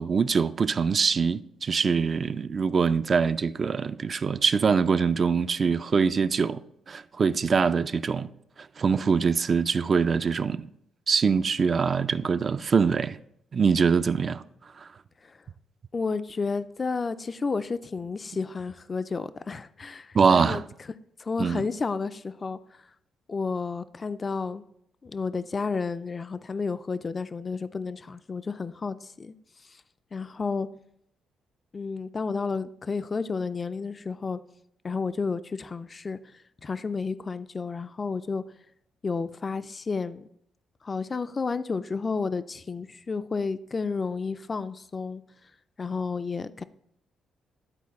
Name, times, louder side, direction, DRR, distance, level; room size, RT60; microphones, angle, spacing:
voice 1, 0.0-8.3 8.6-10.7 11.1-13.2 13.5-14.4 14.8-14.9 20.1-20.6 21.4-21.6, right 5 dB, 40° right, 0.4 m, -24 dB
voice 2, 15.9-20.6 21.2-22.6 23.3-24.6 25.0-29.3 30.1-30.7 31.7-34.4 34.8-36.2 36.6-38.4 39.0-40.3 40.8-45.2 45.8-46.6, left 4 dB, 30° left, 0.3 m, -31 dB
11.0 x 4.2 x 4.1 m
cardioid pair, 90°, 0 cm